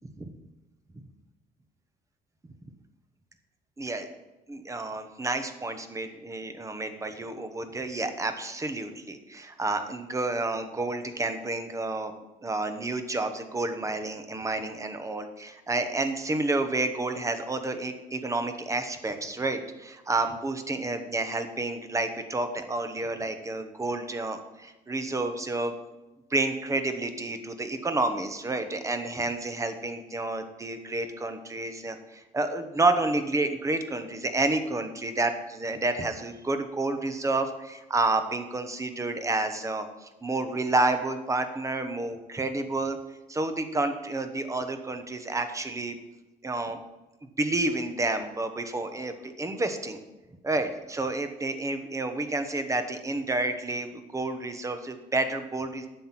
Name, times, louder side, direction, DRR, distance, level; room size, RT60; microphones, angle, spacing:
voice 1, 3.8-4.1 4.5-12.1 12.4-25.7 26.3-43.0 43.3-45.9 46.4-46.8 47.4-50.0 50.4-55.9, right 2 dB, 20° right, 8 dB, 1.2 m, -30 dB
10.0 x 7.4 x 6.0 m, 1.1 s
cardioid pair, 110°, 17 cm